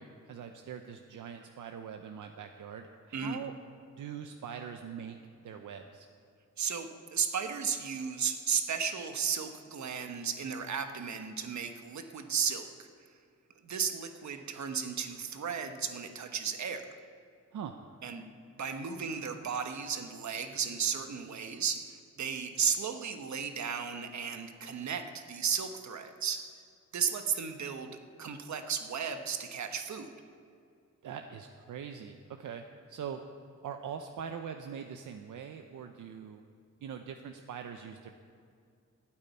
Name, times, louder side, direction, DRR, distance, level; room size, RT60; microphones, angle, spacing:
voice 1, 0.0-3.5 4.0-5.2 5.4-6.1 17.5-17.8 31.0-33.2 33.6-36.4 36.8-38.1, right 7 dB, 85° right, 5 dB, 0.8 m, -42 dB
voice 2, 3.1-3.5 6.6-12.9 13.6-16.8 18.0-18.2 18.6-26.4 26.9-27.9 28.2-30.1, right 7 dB, 65° right, 6 dB, 1.2 m, -34 dB
13.0 x 8.7 x 9.4 m, 2.3 s
wide cardioid pair, 125°, 30 cm